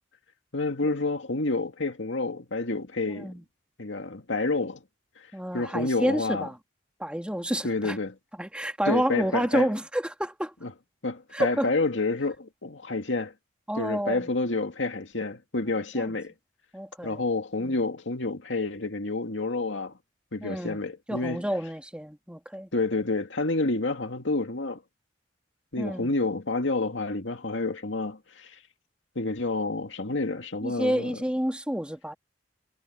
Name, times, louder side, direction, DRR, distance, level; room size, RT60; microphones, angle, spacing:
voice 1, 0.5-3.3 3.8-4.8 5.5-6.5 7.6-8.1 8.9-9.7 10.6-10.7 11.0-13.3 13.8-16.3 17.0-19.9 20.3-21.4 22.7-24.8 25.7-28.5 29.2-31.1, left 3 dB, 85° left, 2.1 m, -29 dB
voice 2, 5.3-6.6 7.0-8.0 8.4-10.5 11.3-11.7 13.7-14.3 16.0-16.2 16.7-17.3 17.6-17.8 20.4-20.8 21.1-22.7 25.8-26.1 30.6-32.1, equal, 5° right, 2.0 m, -29 dB
head